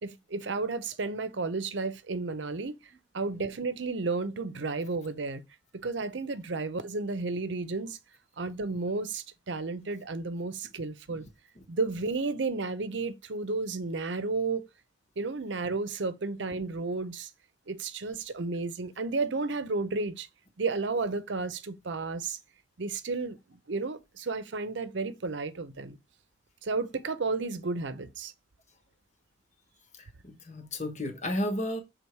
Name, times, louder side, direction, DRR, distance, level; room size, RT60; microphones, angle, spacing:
voice 1, 0.0-2.7 3.1-5.4 5.7-8.0 8.4-11.3 11.7-14.7 15.2-17.3 17.7-20.3 20.6-22.4 22.8-26.0 26.6-28.3, right 3 dB, 70° right, 0.7 m, -32 dB
voice 2, 30.0-31.8, left 1 dB, 35° left, 1.5 m, -33 dB
7.1 x 3.6 x 4.6 m
head